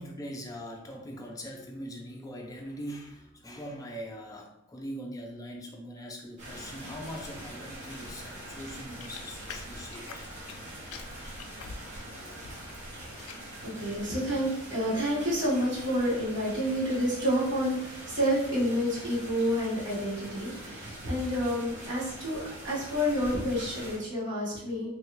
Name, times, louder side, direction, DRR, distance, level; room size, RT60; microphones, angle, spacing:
voice 1, 0.0-10.3 12.0-12.4, equal, 15° left, 1 dB, 0.3 m, -41 dB
sound 1, 6.4-24.0, right 1 dB, 35° right, 1.0 m, -43 dB
sound 2, 9.0-10.6 10.9-12.7 13.0-13.5 14.0-14.3, left 5 dB, 90° left, 0.3 m, -46 dB
voice 2, 13.6-24.9, equal, 55° right, -8 dB, 1.4 m, -29 dB
3.2 x 2.3 x 3.0 m, 0.84 s
head